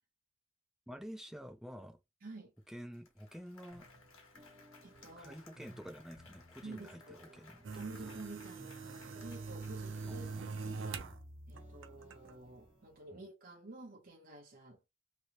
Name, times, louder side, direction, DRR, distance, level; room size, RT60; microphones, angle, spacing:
voice 1, 0.9-2.0 2.7-3.9 5.2-7.9 10.1-11.2 13.1-13.2, equal, ahead, 0.4 m, -49 dB
voice 2, 2.2-2.5 4.8-5.4 6.6-7.2 7.7-10.3 11.5-14.9, right 2 dB, 45° right, 0.8 m, -50 dB
Applause, 2.6-2.7 2.9-10.5, left 4 dB, 90° left, 1.2 m, -61 dB
sound 1, 3.7-13.2, right 1 dB, 25° right, 1.6 m, -58 dB
sound 2, 7.6-11.2 11.6-12.3, right 4 dB, 70° right, 0.5 m, -43 dB
3.2 x 2.7 x 2.8 m
head